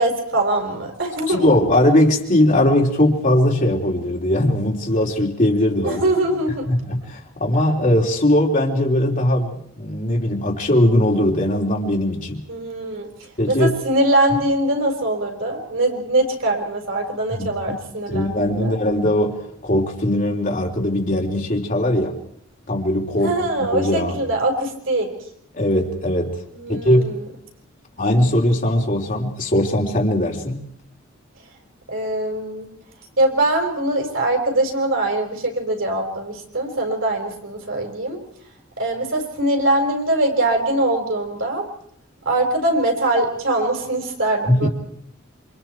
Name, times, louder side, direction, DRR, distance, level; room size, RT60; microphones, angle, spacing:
voice 1, 0.0-1.5 5.8-6.7 12.5-13.1 13.5-18.8 23.2-25.1 26.5-27.3 31.9-32.7 33.2-38.2 38.8-41.6 42.2-44.7, right 1 dB, 65° right, 3 dB, 5.0 m, -22 dB
voice 2, 1.3-6.0 6.6-12.4 13.4-13.7 17.3-17.5 18.1-22.1 22.7-24.2 25.5-26.3 26.7-27.2 28.0-30.6 44.5-44.7, left 1 dB, 40° left, 0 dB, 3.4 m, -20 dB
27.5 x 24.5 x 4.6 m, 0.69 s
head